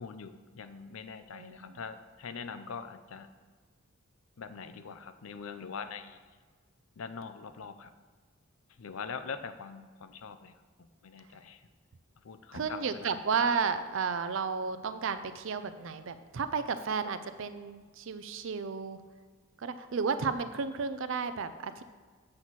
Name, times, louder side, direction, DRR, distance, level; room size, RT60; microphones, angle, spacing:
voice 1, 0.0-3.3 4.4-6.3 7.0-7.9 8.8-11.7 12.2-13.1, left 5 dB, 75° left, 11 dB, 0.5 m, -43 dB
voice 2, 12.5-19.0 19.6-21.8, right 5 dB, 60° right, 11 dB, 0.4 m, -32 dB
7.6 x 4.1 x 6.1 m, 1.5 s
head